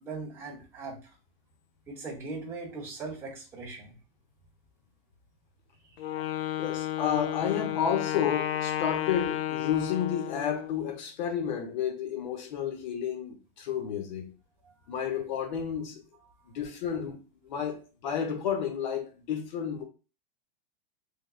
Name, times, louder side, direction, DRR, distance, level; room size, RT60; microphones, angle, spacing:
voice 1, 0.0-1.0 1.9-3.9 6.2-6.3, right 3 dB, 10° right, 0.6 m, -39 dB
Wind instrument woodwind instrument, 6.0-10.8, left 11 dB, 90° left, 0.5 m, -32 dB
voice 2, 6.6-14.3 14.9-16.0 16.5-17.2 17.4-19.8, left 8 dB, 50° left, 0.9 m, -31 dB
3.6 x 3.2 x 2.3 m
supercardioid pair, 175°, 29 cm